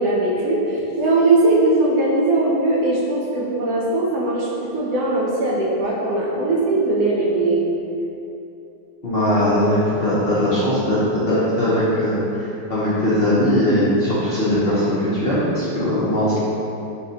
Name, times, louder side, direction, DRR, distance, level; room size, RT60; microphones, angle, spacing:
voice 1, 0.0-7.6, right 2 dB, 70° right, -4 dB, 1.0 m, -20 dB
voice 2, 9.0-16.4, left 1 dB, 55° left, -11 dB, 0.6 m, -20 dB
5.7 x 2.4 x 2.7 m, 2.9 s
omnidirectional pair, 1.9 m